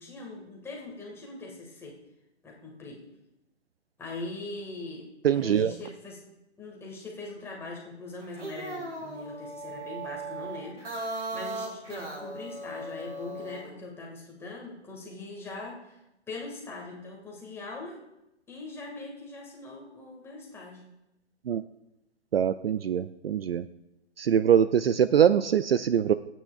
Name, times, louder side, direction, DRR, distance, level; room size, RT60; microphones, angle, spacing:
voice 1, 0.0-2.0 2.4-3.0 4.0-6.2 6.6-16.0 16.3-18.0 18.5-20.8, left 2 dB, 5° left, -2 dB, 1.9 m, -41 dB
voice 2, 5.2-5.7 21.5-21.6 22.3-23.6 24.2-26.1, right 9 dB, 55° right, 13 dB, 0.5 m, -23 dB
sound 1, 8.2-13.7, right 2 dB, 80° right, 4.9 m, -37 dB
27.0 x 9.2 x 2.4 m, 0.89 s
figure-of-eight pair, 140°, 35 cm